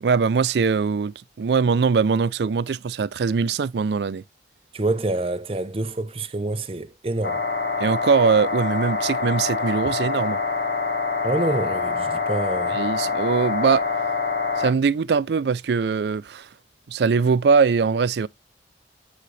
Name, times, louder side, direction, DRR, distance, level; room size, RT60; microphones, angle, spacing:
voice 1, 0.0-4.2 7.8-10.4 12.7-13.8 14.6-16.5 16.9-18.3, right 5 dB, 75° right, 0.4 m, -21 dB
voice 2, 4.7-7.4 9.8-9.9 11.2-12.8, right 2 dB, 30° right, 0.6 m, -27 dB
sound 1, 7.2-14.7, left 4 dB, 60° left, 1.4 m, -25 dB
9.5 x 3.7 x 3.2 m
head